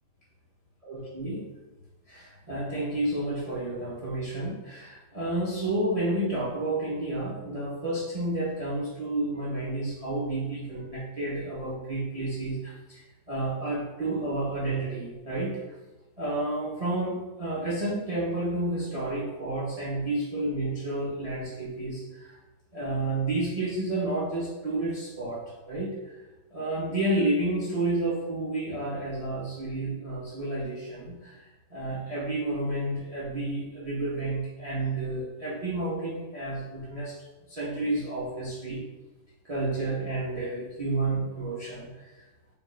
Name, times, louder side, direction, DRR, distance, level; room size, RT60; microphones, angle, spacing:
voice 1, 0.9-1.4 2.1-15.7 16.2-22.4 22.7-26.1 26.5-31.4 31.7-37.1 37.5-38.8 39.4-42.0, right 2 dB, 50° right, -7 dB, 0.4 m, -30 dB
3.5 x 2.3 x 4.4 m, 1.1 s
omnidirectional pair, 1.9 m